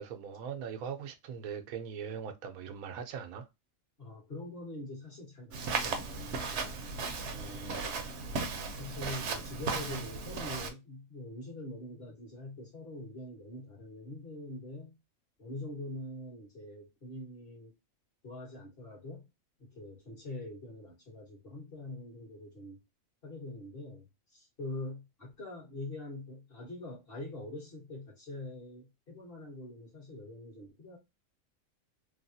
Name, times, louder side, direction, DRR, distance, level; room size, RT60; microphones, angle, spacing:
voice 1, 0.0-3.5, right 7 dB, 85° right, 1.1 m, -40 dB
voice 2, 4.0-6.8 7.3-8.0 8.8-15.0 15.4-17.8 18.2-19.3 19.6-22.8 23.2-31.0, left 2 dB, 45° left, 1.6 m, -44 dB
Walk footsteps, 5.5-10.7, right 4 dB, 60° right, 0.9 m, -36 dB
3.4 x 2.3 x 2.6 m
omnidirectional pair, 1.4 m